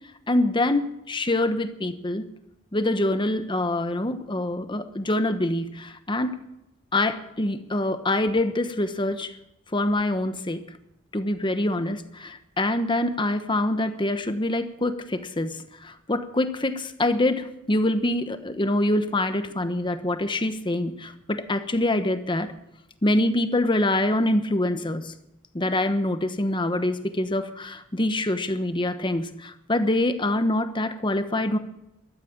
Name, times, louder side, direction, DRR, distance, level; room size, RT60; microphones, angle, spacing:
voice 1, 0.3-2.3 2.7-6.4 6.9-9.3 9.7-10.6 11.1-22.5 23.0-25.2 25.5-31.6, left 1 dB, 25° left, 10 dB, 1.1 m, -25 dB
13.5 x 13.5 x 7.5 m, 0.84 s
head